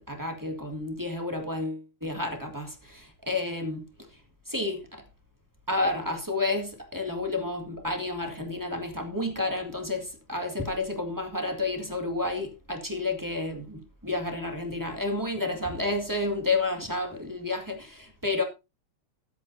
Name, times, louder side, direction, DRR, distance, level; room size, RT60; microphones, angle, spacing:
voice 1, 0.0-3.8 4.5-5.0 5.7-18.4, left 2 dB, 10° right, 1.2 m, -30 dB
21.0 x 8.3 x 2.7 m
omnidirectional pair, 3.4 m